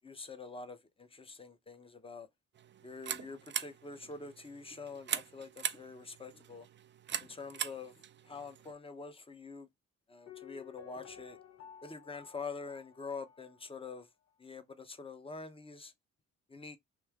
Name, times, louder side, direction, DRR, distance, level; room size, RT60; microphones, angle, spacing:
voice 1, 0.0-2.3 2.8-6.7 7.2-7.9 8.2-9.7 10.1-11.4 11.8-14.1 14.4-15.9 16.5-16.8, left 4 dB, 20° left, 0.8 m, -46 dB
sound 1, 2.6-8.7, right 9 dB, 40° right, 0.4 m, -41 dB
Piano, 10.3-14.0 14.3-14.4, left 9 dB, 55° left, 0.8 m, -54 dB
3.2 x 2.8 x 3.4 m
cardioid pair, 90°, 30 cm